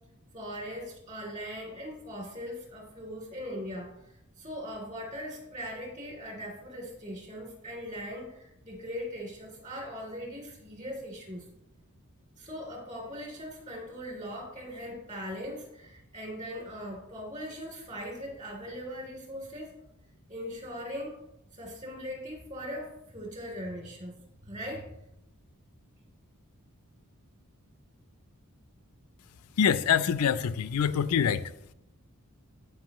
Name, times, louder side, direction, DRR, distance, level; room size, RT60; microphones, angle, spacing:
voice 1, 0.3-3.9 4.4-11.4 12.4-19.7 20.3-21.1 21.5-24.2 24.4-24.9, equal, 35° right, 3.0 m, -40 dB
voice 2, 29.6-31.5, left 7 dB, 85° left, 0.4 m, -25 dB
15.0 x 5.4 x 3.0 m
head